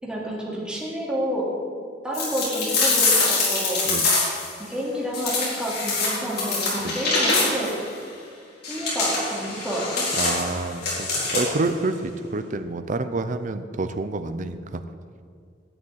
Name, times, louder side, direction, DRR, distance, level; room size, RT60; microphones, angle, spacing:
voice 1, 0.0-1.5 2.0-3.8 4.7-7.8 8.7-10.0, equal, 5° right, -5 dB, 2.9 m, -29 dB
sound 1, 2.1-4.5 5.1-7.8 8.6-11.7, left 3 dB, 60° left, 4.0 m, -24 dB
voice 2, 10.2-14.8, right 3 dB, 45° right, 9 dB, 0.6 m, -28 dB
11.5 x 6.5 x 9.4 m, 2.1 s
head